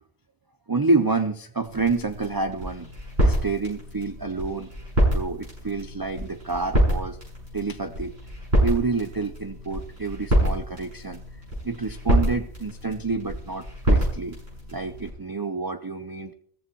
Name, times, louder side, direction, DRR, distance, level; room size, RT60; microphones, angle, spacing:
voice 1, 0.7-2.9 3.2-4.7 5.1-7.2 7.5-8.1 8.6-11.2 11.6-14.4 14.7-16.3, right 3 dB, 25° right, 9 dB, 0.5 m, -28 dB
sound 1, 1.6-15.1, right 1 dB, 70° right, 7.5 m, -27 dB
15.0 x 14.0 x 4.6 m, 0.64 s
omnidirectional pair, 1.1 m